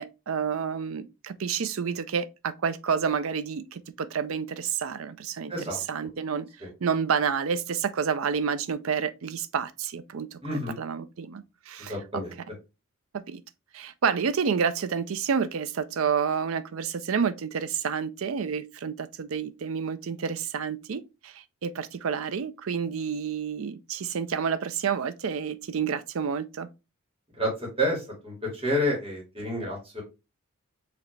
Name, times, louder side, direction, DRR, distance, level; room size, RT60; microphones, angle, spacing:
voice 1, 0.0-5.5 5.9-6.5 6.8-11.9 13.1-13.4 13.7-26.7, right 6 dB, 65° right, 0.4 m, -29 dB
voice 2, 5.5-5.8 6.6-6.7 10.4-10.8 11.8-12.4 27.4-30.0, equal, 25° right, 2.0 m, -29 dB
4.8 x 3.2 x 3.2 m
head